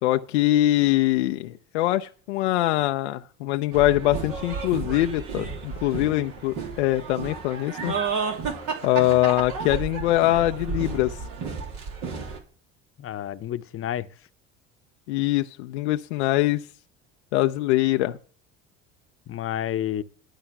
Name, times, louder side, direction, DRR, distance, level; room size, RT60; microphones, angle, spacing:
voice 1, 0.0-8.0 8.8-11.2 15.1-16.6 17.3-18.2, left 15 dB, 85° left, 0.5 m, -23 dB
sound 1, 3.7-12.4, right 5 dB, 65° right, 2.7 m, -32 dB
voice 2, 13.0-14.1 19.3-20.0, left 11 dB, 40° left, 0.8 m, -30 dB
11.5 x 5.6 x 5.8 m
hypercardioid pair, 75°, 33 cm